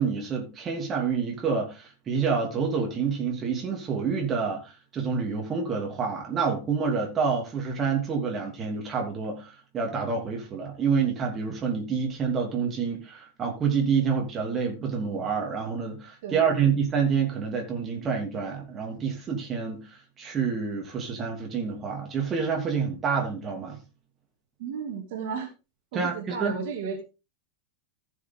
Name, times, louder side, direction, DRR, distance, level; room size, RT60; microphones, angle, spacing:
voice 1, 0.0-23.8 25.9-26.6, right 6 dB, 25° right, 2.9 m, -28 dB
voice 2, 16.2-16.7 24.6-25.5 25.9-27.0, right 6 dB, 50° right, 2.7 m, -34 dB
15.0 x 6.3 x 3.8 m
figure-of-eight pair, 90°, 0 cm